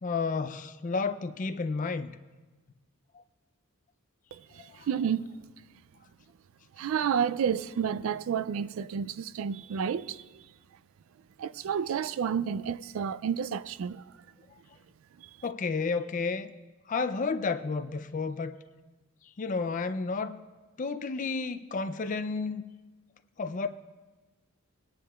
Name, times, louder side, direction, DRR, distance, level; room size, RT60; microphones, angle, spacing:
voice 1, 0.0-2.1 4.8-4.9 15.4-16.5 16.9-18.6 19.4-20.4 20.8-22.6 23.4-23.7, left 4 dB, 35° left, 0.4 m, -31 dB
voice 2, 4.3-5.2 6.8-10.4 11.4-14.0 15.2-15.3, right 7 dB, 65° right, 0.3 m, -30 dB
19.0 x 10.0 x 2.3 m
head